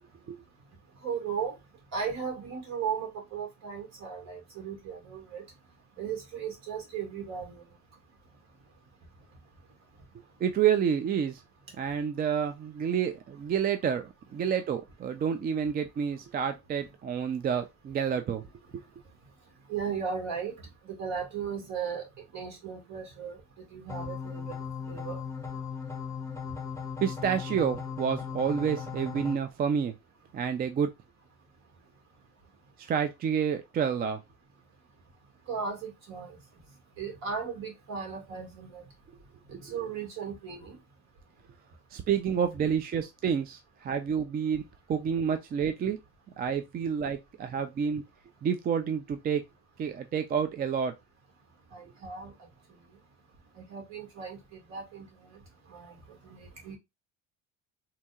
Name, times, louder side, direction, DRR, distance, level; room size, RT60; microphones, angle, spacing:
voice 1, 1.0-1.5 1.9-5.4 6.0-7.5 19.7-20.5 20.9-22.0 22.3-23.4 23.7-24.4 24.9-25.2 35.5-36.4 37.0-38.8 39.5-40.8 51.7-52.3 53.7-54.4 54.7-55.1 55.7-55.9 56.3-56.8, right 6 dB, 60° right, 1.9 m, -36 dB
voice 2, 10.4-11.4 11.8-18.4 27.0-29.9 30.3-30.9 32.8-34.2 41.9-44.6 44.9-46.0 46.4-48.0 48.4-49.4 49.8-50.9, right 7 dB, 30° right, 0.4 m, -29 dB
sound 1, 23.9-29.4, left 6 dB, 10° left, 0.7 m, -37 dB
4.2 x 2.8 x 2.3 m
supercardioid pair, 105°, 31 cm